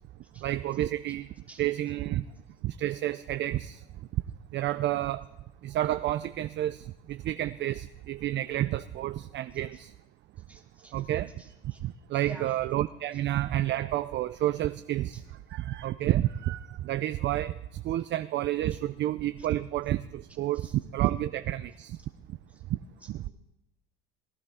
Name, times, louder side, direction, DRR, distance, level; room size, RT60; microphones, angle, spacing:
voice 1, 0.4-1.3 1.6-2.3 2.6-3.8 4.5-5.2 5.6-9.9 10.9-11.3 11.6-15.2 15.5-22.0 22.7-22.8 23.1-23.2, right 14 dB, 40° right, 12 dB, 0.4 m, -30 dB
voice 2, 10.5-10.9 11.4-11.8 12.2-12.5 20.6-20.7, right 2 dB, 5° right, 1 dB, 2.4 m, -48 dB
19.5 x 11.0 x 3.6 m, 0.98 s
supercardioid pair, 95°, 31 cm